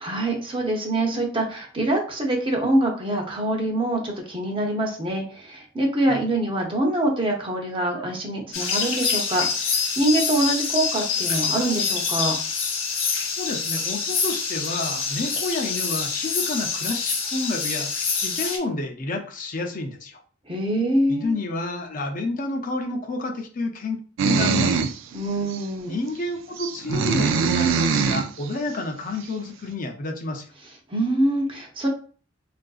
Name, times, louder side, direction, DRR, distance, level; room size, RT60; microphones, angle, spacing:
voice 1, 0.0-12.4 20.5-21.4 25.1-26.0 30.9-31.9, right 1 dB, 25° right, 1 dB, 0.6 m, -24 dB
sound 1, 8.5-18.6, left 5 dB, 85° left, 0.9 m, -26 dB
voice 2, 13.4-17.9 18.2-20.2 21.1-24.0 24.3-24.9 25.8-30.5, left 2 dB, 45° left, 4 dB, 0.5 m, -29 dB
sound 2, 24.2-25.0 25.5-25.6 26.6-28.3, right 5 dB, 75° right, 0.3 m, -22 dB
3.6 x 2.5 x 2.3 m, 0.41 s
head